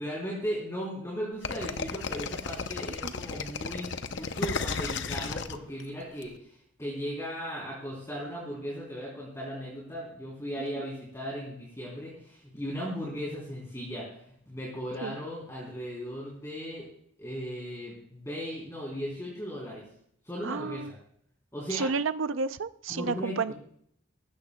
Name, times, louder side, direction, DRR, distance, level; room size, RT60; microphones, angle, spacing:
voice 1, 0.0-16.9 17.2-19.8 20.2-20.8 21.5-21.9 22.9-23.5, equal, 15° left, -5 dB, 3.4 m, -37 dB
sound 1, 1.4-6.2, left 4 dB, 55° left, 0.7 m, -34 dB
voice 2, 20.4-20.9 21.7-23.5, right 4 dB, 70° right, 13 dB, 0.5 m, -31 dB
18.5 x 15.5 x 2.3 m, 0.68 s
head